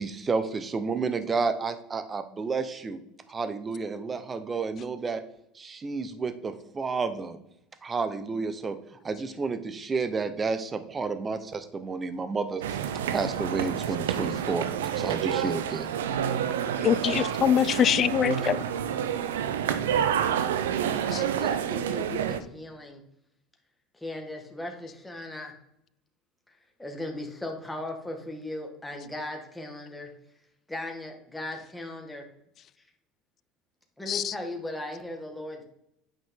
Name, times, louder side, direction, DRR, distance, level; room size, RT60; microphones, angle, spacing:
voice 1, 0.0-3.0 3.3-5.2 5.5-7.4 7.8-12.6 13.1-14.7 15.0-15.9, right 4 dB, 25° right, 1.0 m, -31 dB
sound 1, 12.6-22.4, right 9 dB, 90° right, 0.5 m, -28 dB
voice 2, 16.8-18.6 21.1-21.2 34.1-34.3, left 9 dB, 45° left, 0.3 m, -24 dB
voice 3, 21.0-23.0 24.0-25.5 26.8-30.1 30.7-32.2 34.0-35.6, left 1 dB, 10° left, 1.7 m, -37 dB
9.0 x 5.2 x 3.8 m
supercardioid pair, 90°, 0 cm